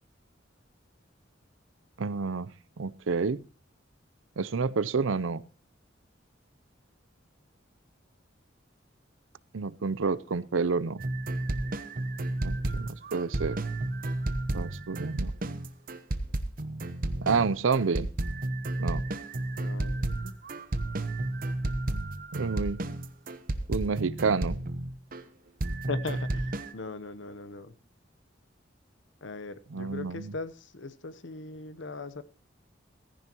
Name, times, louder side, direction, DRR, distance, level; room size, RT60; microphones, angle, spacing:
voice 1, 2.0-2.5 2.8-3.4 4.4-5.4 9.5-11.0 12.4-13.6 14.5-15.3 17.2-18.1 18.8-19.0 22.3-22.8 23.7-24.6 29.7-30.4, right 4 dB, 85° right, 0.6 m, -29 dB
sound 1, 11.0-25.2 25.6-26.7, right 2 dB, 45° right, 0.9 m, -32 dB
voice 2, 19.6-20.3 25.9-27.7 29.2-32.2, left 3 dB, 70° left, 0.9 m, -39 dB
15.5 x 14.5 x 3.0 m
head